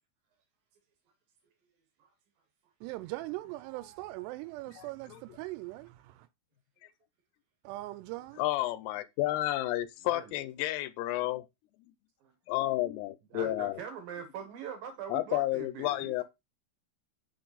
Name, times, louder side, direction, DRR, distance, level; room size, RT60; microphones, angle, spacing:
voice 1, 2.8-6.3 7.6-8.4, right 19 dB, 90° right, 2.7 m, -40 dB
voice 2, 8.4-11.5 12.5-13.8 15.1-16.2, left 16 dB, 85° left, 2.7 m, -31 dB
voice 3, 13.3-16.2, right 7 dB, 70° right, 2.4 m, -42 dB
6.1 x 4.5 x 3.9 m
omnidirectional pair, 4.8 m